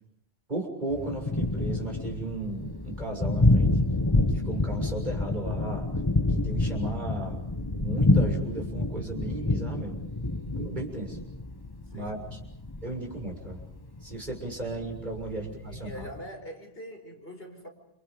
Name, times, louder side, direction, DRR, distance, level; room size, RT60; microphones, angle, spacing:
voice 1, 0.5-3.8 4.3-5.9 6.3-10.0 10.6-11.2 11.9-12.4 12.8-13.6 14.0-16.1, right 2 dB, 45° right, 1 dB, 6.9 m, -35 dB
Thunder, 0.9-16.2, left 2 dB, 20° left, 1.3 m, -28 dB
voice 2, 11.9-12.4 15.7-17.7, equal, 65° left, 3 dB, 5.2 m, -43 dB
29.5 x 29.0 x 5.4 m, 0.76 s
omnidirectional pair, 1.1 m